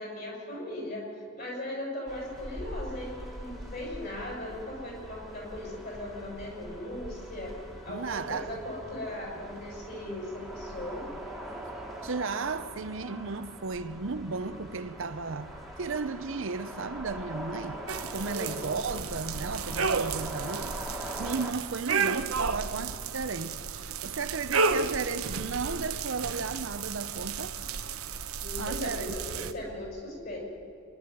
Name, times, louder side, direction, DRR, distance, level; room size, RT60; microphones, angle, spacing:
voice 1, 0.0-7.5 7.8-11.1 18.2-18.7 28.4-30.4, left 1 dB, 45° left, 6.2 m, -38 dB
sound 1, 2.1-21.5, right 1 dB, ahead, 1.8 m, -43 dB
voice 2, 7.9-8.6 12.0-23.6 24.0-27.6 28.6-29.2, right 4 dB, 65° right, 0.7 m, -34 dB
sound 2, 17.9-29.5, right 5 dB, 80° right, 1.0 m, -32 dB
25.5 x 11.5 x 9.4 m
head